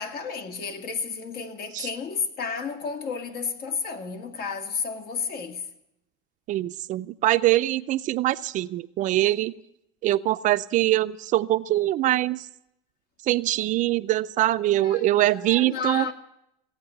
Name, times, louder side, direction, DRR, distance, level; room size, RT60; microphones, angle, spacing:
voice 1, 0.0-5.7 14.8-16.1, left 5 dB, 55° left, 2.2 m, -32 dB
voice 2, 6.5-9.5 10.0-12.5 13.2-16.1, right 15 dB, 45° right, 0.5 m, -23 dB
17.0 x 8.7 x 9.8 m
supercardioid pair, 115°, 18 cm